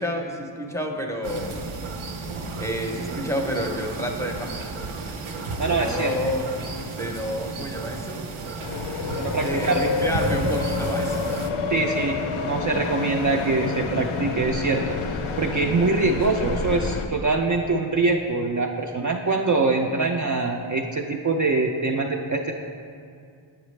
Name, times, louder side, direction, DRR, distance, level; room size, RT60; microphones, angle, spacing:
voice 1, 0.0-1.6 2.6-4.7 5.3-6.5 7.0-8.3 9.4-11.2, equal, 5° left, 1 dB, 0.6 m, -29 dB
sound 1, 1.2-11.5, right 3 dB, 75° right, 0.6 m, -33 dB
voice 2, 5.6-6.1 9.2-9.9 11.7-15.0 15.4-22.5, right 3 dB, 40° right, 1 dB, 0.4 m, -24 dB
sound 2, 8.6-17.1, left 4 dB, 75° left, 0.6 m, -28 dB
7.9 x 5.8 x 3.2 m, 2.3 s
wide cardioid pair, 50°, 49 cm